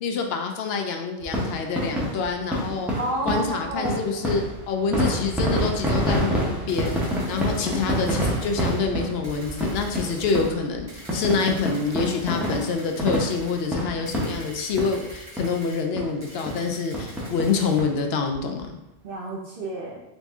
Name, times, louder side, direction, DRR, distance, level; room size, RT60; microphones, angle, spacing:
voice 1, 0.0-2.9 3.3-18.8, left 5 dB, 65° left, 4 dB, 0.7 m, -26 dB
sound 1, 1.2-15.1 15.4-15.5 16.0-16.1 16.5-16.6 16.9-17.9 18.3-18.4 18.6-18.7, equal, ahead, 0.6 m, -27 dB
voice 2, 2.9-4.1 7.3-8.1 19.0-20.0, right 1 dB, 55° right, -1 dB, 0.8 m, -31 dB
sound 2, 6.7-8.8 9.2-10.5 10.9-13.7 14.1-15.8 16.2-17.8, right 1 dB, 80° right, 1.9 m, -46 dB
4.0 x 2.6 x 3.5 m, 0.91 s
omnidirectional pair, 1.3 m